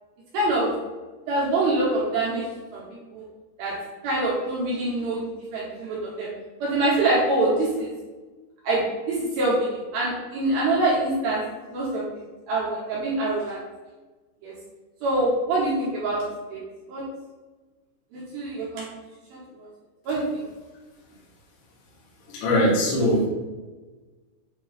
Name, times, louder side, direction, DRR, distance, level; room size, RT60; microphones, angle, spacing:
voice 1, 0.3-0.7 1.3-2.5 2.7-2.8 3.1-3.2 3.6-3.7 4.0-5.2 5.5-6.3 6.6-7.9 8.6-11.4 11.7-13.6 14.4-14.5 15.0-16.2 16.5-16.6 16.9-17.0 18.1-18.9 19.3-19.4 20.1-20.3, right 2 dB, 70° right, -6 dB, 2.3 m, -25 dB
voice 2, 22.3-23.3, equal, 65° left, -6 dB, 3.0 m, -21 dB
8.1 x 3.0 x 4.1 m, 1.3 s
omnidirectional pair, 6.0 m